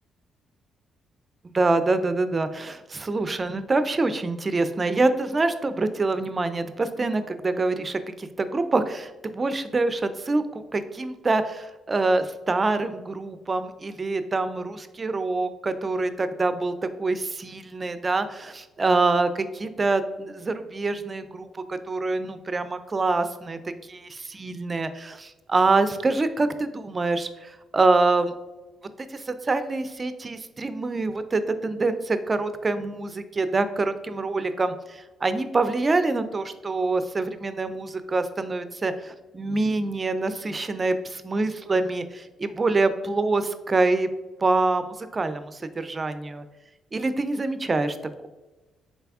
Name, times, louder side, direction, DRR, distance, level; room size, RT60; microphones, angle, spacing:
voice 1, 1.5-28.3 29.0-44.1 44.4-46.4 46.9-48.0, right 3 dB, 30° right, 11 dB, 0.4 m, -25 dB
4.0 x 3.3 x 3.5 m, 1.1 s
cardioid pair, 90°, 0 cm